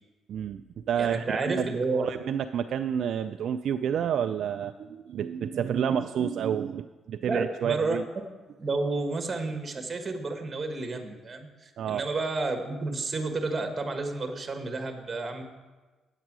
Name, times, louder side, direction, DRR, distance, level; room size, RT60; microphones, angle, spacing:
voice 1, 0.3-1.6 1.9-8.0 11.8-12.0, right 8 dB, 65° right, 9 dB, 0.3 m, -29 dB
voice 2, 1.0-2.1 7.3-8.0 8.6-15.4, right 3 dB, 35° right, 5 dB, 1.5 m, -31 dB
8.9 x 8.0 x 6.1 m, 1.3 s
cardioid pair, 90°, 0 cm